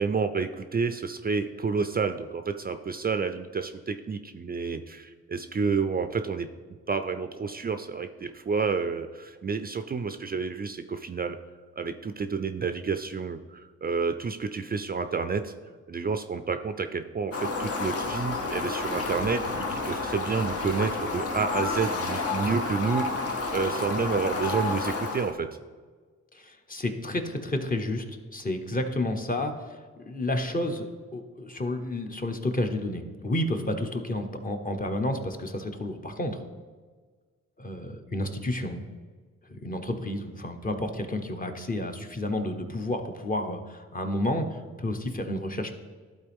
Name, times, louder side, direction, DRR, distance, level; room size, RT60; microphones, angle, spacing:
voice 1, 0.0-6.5 6.9-11.4 11.8-15.5 15.9-25.5, right 5 dB, 30° right, 9 dB, 0.4 m, -29 dB
Fowl, 17.3-25.3, left 3 dB, 55° left, 1.0 m, -30 dB
voice 2, 26.3-28.0 28.3-29.8 30.1-36.4 37.6-38.8 39.5-45.7, left 1 dB, 30° left, 5 dB, 1.0 m, -31 dB
11.5 x 4.1 x 3.5 m, 1.5 s
cardioid pair, 60°, 29 cm